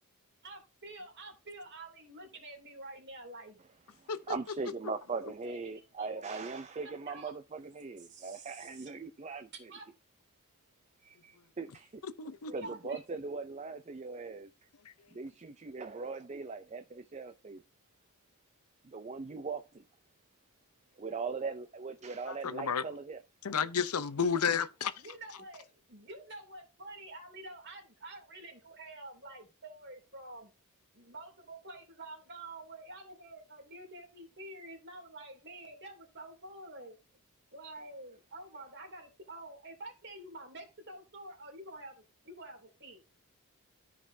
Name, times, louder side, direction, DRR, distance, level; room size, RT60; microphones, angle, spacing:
voice 1, 0.4-3.6 5.2-6.4 6.8-7.3 8.0-8.9 9.5-9.9 12.5-13.0 25.0-30.5 30.9-37.0 37.5-43.0, right 2 dB, 50° right, 2.9 m, -48 dB
voice 2, 4.0-9.7 11.0-12.0 12.5-14.5 15.1-17.6 18.8-19.8 21.0-23.2, right 4 dB, 30° right, 0.5 m, -40 dB
voice 3, 12.2-12.7 22.4-22.8 23.4-24.9, left 6 dB, 80° left, 0.7 m, -31 dB
13.5 x 5.1 x 2.7 m
head